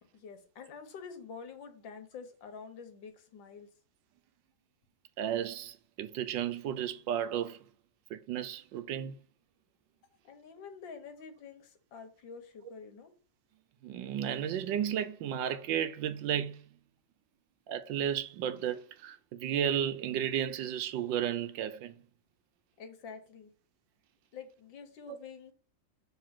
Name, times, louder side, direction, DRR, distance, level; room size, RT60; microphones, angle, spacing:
voice 1, 0.1-3.7 10.2-13.1 22.8-23.5 24.3-25.5, left 5 dB, 80° left, 1.8 m, -47 dB
voice 2, 5.2-7.6 8.1-9.2 13.8-16.7 17.7-21.9 25.1-25.2, right 9 dB, 80° right, 1.4 m, -33 dB
6.9 x 3.4 x 5.9 m
omnidirectional pair, 2.0 m